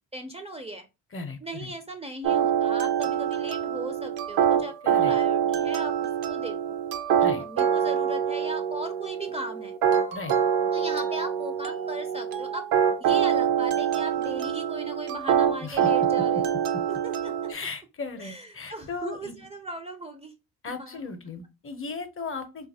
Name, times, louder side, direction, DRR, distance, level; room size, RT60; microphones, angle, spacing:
voice 1, 0.1-0.9 1.4-4.7 5.0-5.9 6.3-6.6 7.1-9.8 10.7-12.7 13.0-16.5 16.9-17.5 18.2-20.3 20.8-21.0, right 1 dB, 20° right, 0.4 m, -37 dB
voice 2, 1.1-1.7 4.8-5.2 7.2-7.4 10.1-10.4 15.6-16.1 17.5-19.5 20.6-22.7, left 4 dB, 35° left, 0.6 m, -37 dB
sound 1, 2.2-17.5, right 8 dB, 75° right, 0.5 m, -25 dB
2.7 x 2.3 x 2.6 m
supercardioid pair, 60°, 37 cm